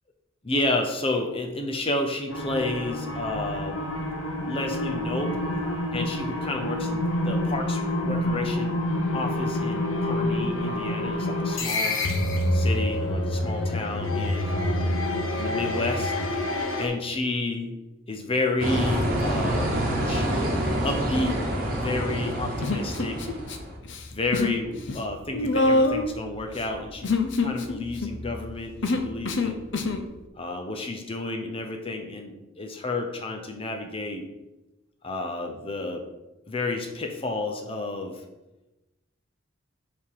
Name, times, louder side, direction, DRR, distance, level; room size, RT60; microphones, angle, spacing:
voice 1, 0.4-3.9 4.5-5.4 5.9-8.8 9.1-12.0 12.5-15.0 15.3-16.1 16.8-17.7 18.1-20.3 20.8-21.4 21.8-23.3 24.1-29.7 30.4-34.2 35.0-36.1 36.5-38.2, left 2 dB, 25° left, 4 dB, 0.7 m, -31 dB
sound 1, 2.3-16.9, left 1 dB, 75° left, 1.0 m, -27 dB
sound 2, 18.6-23.7, equal, 45° right, 1.4 m, -27 dB
Human voice, 22.6-23.6 23.8-24.6 24.9-30.1, left 2 dB, 60° left, 0.6 m, -26 dB
7.1 x 3.7 x 4.8 m, 1.0 s
head